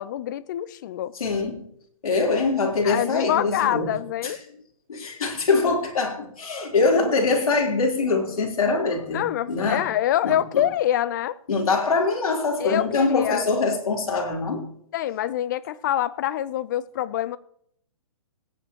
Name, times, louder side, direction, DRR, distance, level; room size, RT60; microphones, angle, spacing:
voice 1, 0.0-1.1 2.8-4.4 9.1-11.4 12.6-13.4 14.9-17.4, left 12 dB, 35° left, 0.5 m, -25 dB
voice 2, 1.2-1.6 2.0-3.9 4.2-4.3 4.9-9.9 10.2-10.6 11.5-14.7, left 3 dB, 85° left, 3.6 m, -23 dB
18.5 x 10.0 x 2.9 m
hypercardioid pair, 155°, 18 cm